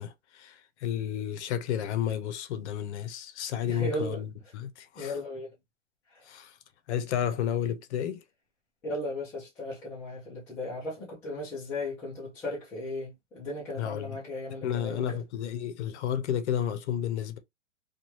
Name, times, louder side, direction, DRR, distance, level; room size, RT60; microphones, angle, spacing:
voice 1, 0.0-5.2 6.3-6.6 6.9-8.2 13.8-14.2 14.6-17.4, left 9 dB, 60° left, 0.7 m, -32 dB
voice 2, 3.7-4.2 5.0-5.5 8.8-15.2, left 1 dB, 5° left, 0.4 m, -36 dB
3.0 x 2.3 x 2.7 m
hypercardioid pair, 150°, 38 cm